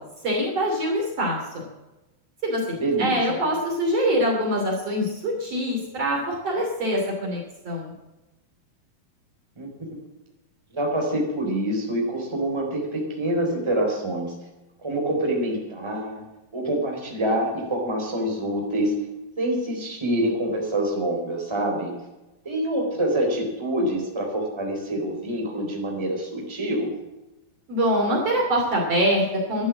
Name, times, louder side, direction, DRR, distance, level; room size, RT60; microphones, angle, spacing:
voice 1, 0.2-1.6 2.4-2.6 3.0-7.4 7.7-7.9 27.7-29.7, equal, 45° right, -1 dB, 3.5 m, -24 dB
voice 2, 2.8-3.4 9.6-9.9 10.7-14.3 14.8-16.2 16.5-18.9 19.4-21.9 22.4-26.9, right 1 dB, 5° right, -1 dB, 3.6 m, -26 dB
12.5 x 11.5 x 7.4 m, 1.0 s
omnidirectional pair, 4.2 m